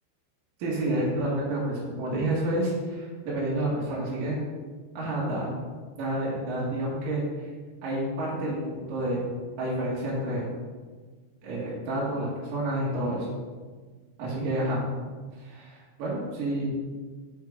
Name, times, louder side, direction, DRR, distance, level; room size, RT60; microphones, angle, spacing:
voice 1, 0.6-4.4 4.9-5.5 6.0-7.5 7.8-9.2 9.6-10.5 11.4-13.3 14.2-14.8 15.4-16.7, right 1 dB, 60° right, -6 dB, 2.7 m, -29 dB
7.0 x 6.1 x 4.8 m, 1.5 s
omnidirectional pair, 5.3 m